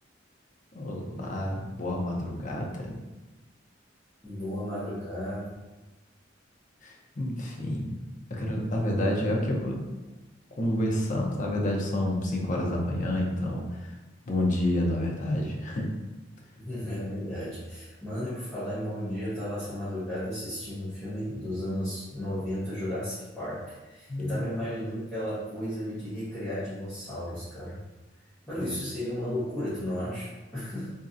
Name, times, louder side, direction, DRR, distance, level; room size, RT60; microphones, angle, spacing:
voice 1, 0.7-3.0 6.8-7.9 8.3-9.8 10.5-14.0 14.3-15.9 24.1-24.4 28.5-28.7, left 1 dB, 40° left, -1 dB, 0.5 m, -29 dB
voice 2, 4.2-5.5 16.5-27.8 28.5-30.9, equal, 5° left, -14 dB, 0.9 m, -34 dB
3.1 x 2.5 x 2.5 m, 1.1 s
head